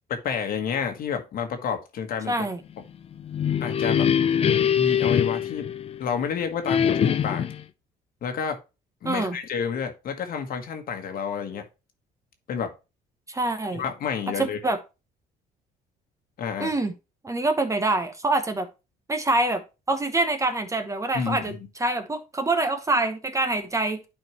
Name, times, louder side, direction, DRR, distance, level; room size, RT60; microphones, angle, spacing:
voice 1, 0.1-2.3 3.6-4.1 4.8-5.7 6.0-7.5 8.2-8.6 9.0-11.6 12.5-12.7 13.7-14.6 16.4-16.7 21.1-21.6, left 6 dB, 60° left, 6 dB, 1.4 m, -29 dB
voice 2, 2.3-2.6 9.0-9.4 13.3-13.8 14.4-14.8 16.6-16.9 17.2-18.7 19.1-19.6 19.9-24.0, right 2 dB, 20° right, 8 dB, 1.0 m, -25 dB
sound 1, 3.1-6.2 6.7-7.6, left 8 dB, 35° left, 0.5 m, -23 dB
11.0 x 4.4 x 3.0 m, 0.27 s
cardioid pair, 110°, 17 cm